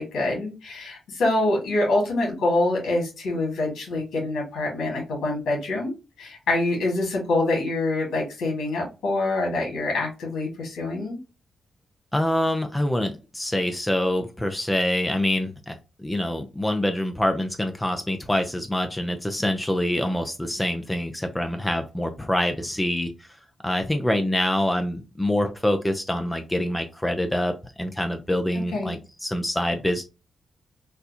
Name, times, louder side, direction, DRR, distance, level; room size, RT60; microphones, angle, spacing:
voice 1, 0.0-11.2 28.5-29.0, left 2 dB, 80° left, -1 dB, 1.7 m, -25 dB
voice 2, 12.1-23.1 23.6-30.0, left 1 dB, 10° left, 6 dB, 0.5 m, -25 dB
4.2 x 2.3 x 2.7 m, 0.29 s
cardioid pair, 70°, 0 cm